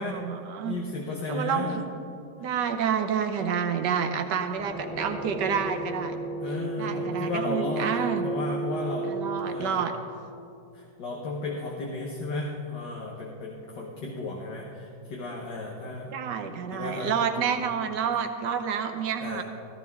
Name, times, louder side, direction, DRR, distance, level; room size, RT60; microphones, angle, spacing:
voice 1, 0.0-0.8 1.3-1.9 2.4-6.2 6.8-8.3 9.1-9.9 16.1-19.4, right 7 dB, 65° right, 7 dB, 1.4 m, -29 dB
voice 2, 0.6-1.8 4.0-4.6 6.4-9.2 9.4-9.8 10.7-16.1 16.7-17.6 19.2-19.4, left 3 dB, 65° left, -1 dB, 1.8 m, -34 dB
sound 1, 4.6-9.4, right 3 dB, ahead, 1.9 m, -33 dB
15.0 x 14.5 x 3.6 m, 2.6 s
omnidirectional pair, 2.1 m